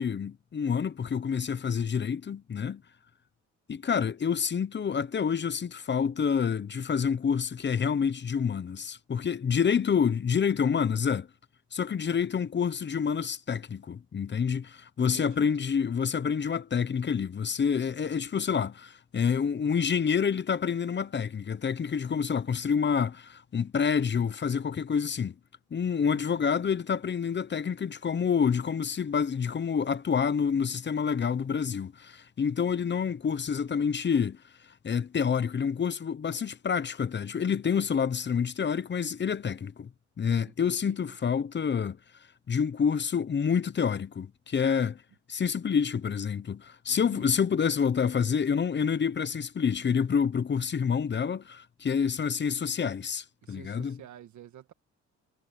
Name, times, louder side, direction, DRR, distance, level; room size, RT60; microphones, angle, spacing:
voice 1, 0.0-2.8 3.7-11.3 11.7-25.3 25.7-34.4 34.8-39.9 40.2-42.0 42.5-45.0 45.3-54.0, left 6 dB, 35° left, 1.0 m, -28 dB
voice 2, 9.5-9.9 15.0-15.5 26.0-26.4 40.4-41.4 46.9-47.3 53.4-54.7, right 11 dB, 70° right, 1.9 m, -50 dB
cardioid pair, 90°, 30 cm